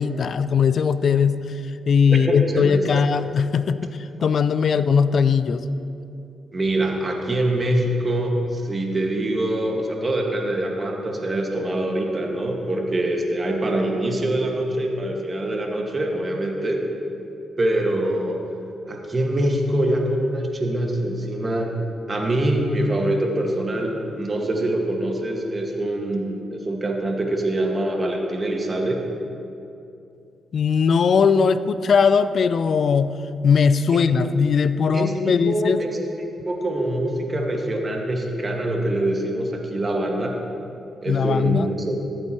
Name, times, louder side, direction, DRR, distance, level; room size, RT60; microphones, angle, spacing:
voice 1, 0.0-5.6 30.5-33.2 33.4-35.8 41.1-41.7, left 6 dB, 60° left, 13 dB, 0.4 m, -19 dB
voice 2, 2.1-3.3 6.5-16.8 17.6-18.4 18.9-21.7 22.1-29.0 33.9-34.0 34.9-40.4 41.0-42.0, right 1 dB, 35° right, 1 dB, 1.8 m, -24 dB
14.5 x 7.9 x 3.0 m, 2.7 s
hypercardioid pair, 45°, 0 cm